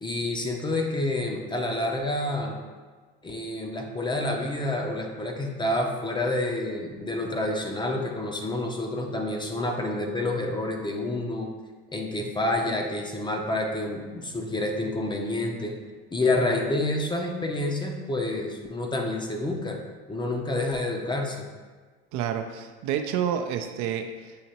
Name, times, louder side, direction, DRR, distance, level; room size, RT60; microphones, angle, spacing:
voice 1, 0.0-2.6 3.2-11.5 11.9-15.7 16.1-19.8 20.1-21.5, left 2 dB, 15° left, 1 dB, 0.6 m, -28 dB
voice 2, 22.1-24.4, right 8 dB, 65° right, 6 dB, 0.5 m, -29 dB
6.5 x 2.8 x 2.8 m, 1.4 s
supercardioid pair, 95°, 32 cm